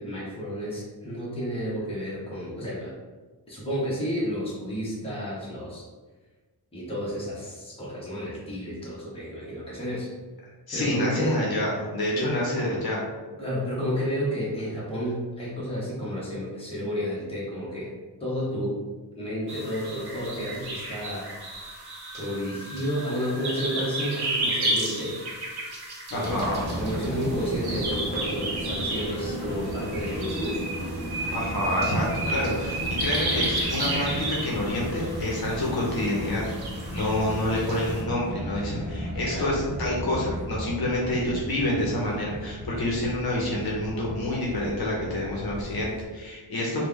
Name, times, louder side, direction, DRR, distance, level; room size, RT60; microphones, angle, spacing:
voice 1, 0.0-2.9 3.5-5.9 6.7-10.1 10.7-11.4 12.1-12.3 13.4-17.9 18.2-18.7 19.2-21.3 22.1-25.2 26.1-26.4 26.7-30.6 39.3-39.5 46.7-46.9, equal, 15° left, -8 dB, 0.9 m, -31 dB
voice 2, 10.7-13.0 26.1-26.6 31.3-36.4 36.9-46.9, left 1 dB, 60° left, -4 dB, 0.8 m, -28 dB
sound 1, 19.5-38.0, right 2 dB, 65° right, 0.8 m, -33 dB
sound 2, 26.2-46.1, equal, 20° right, 0.8 m, -35 dB
3.2 x 2.2 x 3.6 m, 1.3 s
wide cardioid pair, 175°, 42 cm